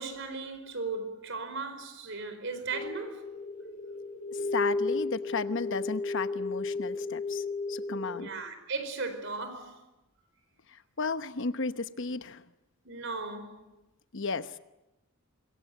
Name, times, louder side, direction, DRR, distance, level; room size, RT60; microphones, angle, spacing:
voice 1, 0.0-3.2 8.1-9.8 12.8-13.7, right 3 dB, 55° right, 4.9 m, -37 dB
sound 1, 2.7-8.3, left 3 dB, 40° left, 2.1 m, -34 dB
voice 2, 4.5-7.4 7.7-8.3 11.0-12.4 14.1-14.5, left 4 dB, 55° left, 1.0 m, -33 dB
25.5 x 23.0 x 9.4 m
head